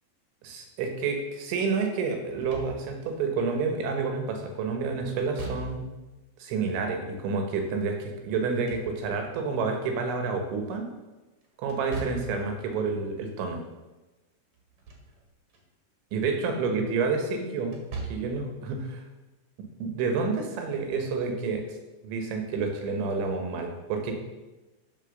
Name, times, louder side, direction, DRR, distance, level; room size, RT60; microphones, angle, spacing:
voice 1, 0.4-5.9 6.4-10.9 11.6-13.6 16.1-17.8 18.1-19.0 19.8-21.6 22.0-24.1, right 4 dB, 80° right, 4 dB, 3.8 m, -29 dB
Slam / Thump thud, 2.3-3.2 5.2-6.1 8.3-9.4 11.7-12.5 14.6-15.2 15.5-15.6 17.6-18.5, right 3 dB, 55° right, 2.2 m, -39 dB
13.0 x 4.6 x 6.6 m, 1.1 s
omnidirectional pair, 5.3 m